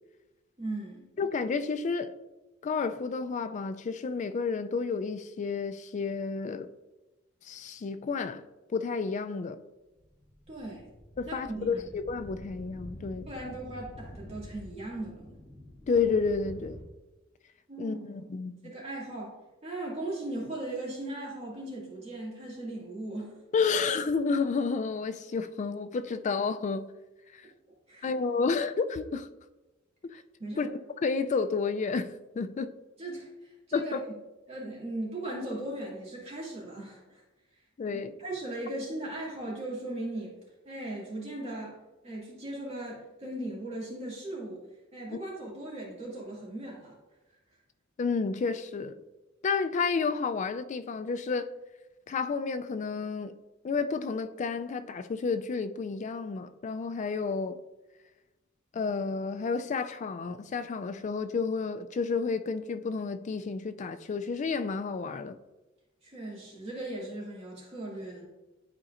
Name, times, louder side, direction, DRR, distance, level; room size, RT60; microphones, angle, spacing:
voice 1, 0.6-1.1 10.5-10.8 11.3-11.8 13.3-15.3 17.7-18.0 18.4-19.3 19.6-23.3 27.9-28.1 30.4-30.7 33.0-33.3 33.7-34.1 34.5-37.2 37.9-40.3 40.7-41.7 42.0-44.6 44.9-46.9 66.0-68.2, right 1 dB, 30° right, 2.2 m, -38 dB
voice 2, 1.2-2.1 2.6-6.7 7.5-8.4 8.7-9.6 11.2-13.3 15.9-16.8 17.8-18.7 23.5-26.9 28.0-29.3 30.0-30.2 30.6-30.7 31.0-32.1 32.3-32.7 33.7-34.0 37.8-38.2 45.1-45.2 48.0-48.9 49.4-51.5 52.1-53.3 53.6-57.6 58.7-65.4, left 4 dB, 35° left, 0.3 m, -31 dB
sound 1, 10.0-16.8, left 1 dB, 20° left, 2.0 m, -47 dB
10.5 x 4.2 x 2.5 m
head